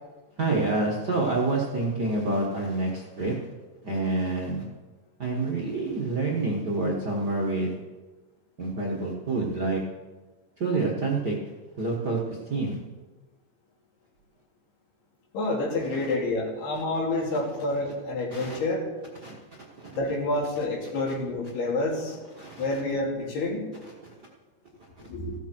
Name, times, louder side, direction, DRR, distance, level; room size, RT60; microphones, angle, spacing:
voice 1, 0.4-3.4 3.8-4.6 5.2-7.7 8.6-9.8 10.6-11.4 11.8-12.2 12.5-12.8 16.7-16.8 17.3-17.4 18.3-18.6 19.2-19.4 22.4-22.8, right 2 dB, 75° right, -3 dB, 0.9 m, -27 dB
voice 2, 15.3-18.8 19.9-22.1 22.6-23.7 25.1-25.3, left 2 dB, 80° left, -2 dB, 4.8 m, -28 dB
16.0 x 13.0 x 4.5 m, 1.2 s
omnidirectional pair, 4.5 m